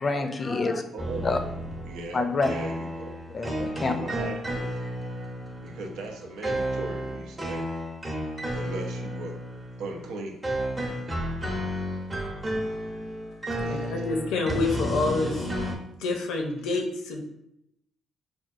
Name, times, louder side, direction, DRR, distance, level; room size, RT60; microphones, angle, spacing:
voice 1, 0.0-0.8 1.2-1.4 2.1-2.5 3.3-3.9, left 3 dB, 35° left, 7 dB, 0.4 m, -26 dB
voice 2, 0.9-1.3 1.8-3.1 3.8-4.6 5.6-7.7 8.5-9.4 9.8-10.4 13.6-13.9, right 2 dB, 90° right, 2 dB, 0.6 m, -38 dB
sound 1, 1.0-15.8, equal, 25° right, 0.8 m, -32 dB
voice 3, 13.6-15.5 16.0-17.2, left 3 dB, 90° left, 3 dB, 0.5 m, -27 dB
4.4 x 2.3 x 2.5 m, 0.78 s
cardioid pair, 90°, 0 cm